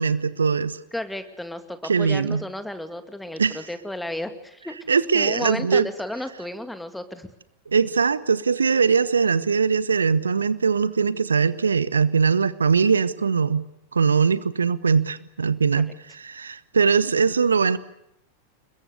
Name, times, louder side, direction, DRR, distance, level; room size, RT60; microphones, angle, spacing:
voice 1, 0.0-0.8 1.8-2.4 3.4-3.6 4.9-5.9 7.7-13.6 13.9-17.8, right 5 dB, 75° right, 18 dB, 1.0 m, -21 dB
voice 2, 0.9-4.8 5.1-7.3, left 1 dB, 5° left, 9 dB, 2.4 m, -33 dB
29.0 x 22.0 x 6.8 m, 0.79 s
figure-of-eight pair, 90°, 0 cm